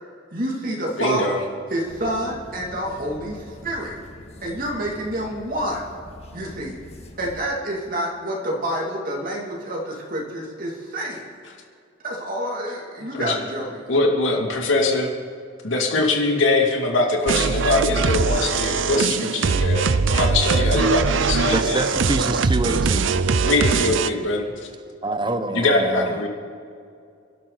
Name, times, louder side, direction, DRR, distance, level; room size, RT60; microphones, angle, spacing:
voice 1, 0.3-1.4 1.7-4.0 4.4-5.8 6.3-6.8 7.2-11.3 12.0-13.8, right 1 dB, 45° right, -3 dB, 2.7 m, -28 dB
voice 2, 1.0-1.4 13.1-13.4 13.9-15.1 15.6-21.8 23.4-24.5 25.5-26.3, left 2 dB, 90° left, 0 dB, 2.5 m, -22 dB
sound 1, 1.9-7.4, left 1 dB, 35° left, 1.8 m, -43 dB
sound 2, 17.3-24.1, right 4 dB, 75° right, 0.6 m, -21 dB
voice 3, 21.5-23.1 25.0-26.3, right 2 dB, 25° right, 9 dB, 0.9 m, -26 dB
28.5 x 12.0 x 4.1 m, 2.4 s
head